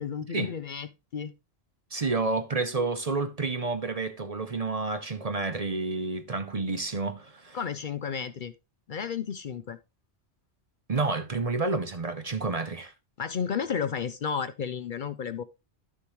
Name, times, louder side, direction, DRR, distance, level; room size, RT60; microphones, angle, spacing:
voice 1, 0.0-1.3 7.5-8.5 8.9-9.8 13.2-15.4, left 7 dB, 55° left, 0.7 m, -32 dB
voice 2, 1.9-7.6 10.9-12.9, right 3 dB, 40° right, 0.7 m, -30 dB
11.5 x 6.8 x 3.1 m
omnidirectional pair, 1.1 m